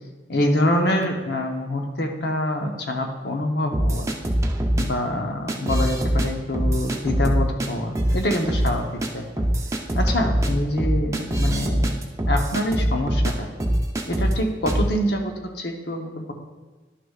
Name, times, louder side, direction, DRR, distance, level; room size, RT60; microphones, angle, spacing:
voice 1, 0.3-4.1 4.8-9.5 10.0-12.0 12.2-13.5 14.1-16.3, left 1 dB, 65° left, 3 dB, 0.9 m, -25 dB
sound 1, 3.7-4.8 5.5-6.3 6.5-7.7 7.9-8.7 9.0-9.1 9.4-13.3 13.6-14.3 14.7-14.9, equal, 15° right, 0.6 m, -22 dB
11.0 x 6.3 x 2.4 m, 1.3 s
head